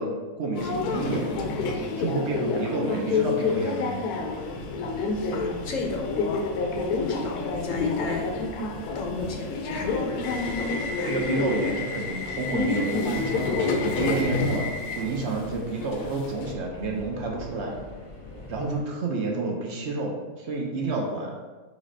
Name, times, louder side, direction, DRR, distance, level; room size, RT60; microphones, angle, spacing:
voice 1, 0.0-1.3 2.0-3.9 11.0-17.8 18.5-21.4, right 3 dB, 55° right, -1 dB, 0.9 m, -30 dB
Subway metro underground, 0.5-16.5, left 4 dB, 85° left, 1.1 m, -29 dB
Subway metro underground 2, 4.1-18.9, left 1 dB, 40° left, 0.9 m, -42 dB
voice 2, 5.3-6.4 6.9-8.3 8.9-11.2, left 3 dB, 70° left, 2 dB, 0.9 m, -32 dB
4.0 x 3.3 x 3.9 m, 1.3 s
omnidirectional pair, 1.6 m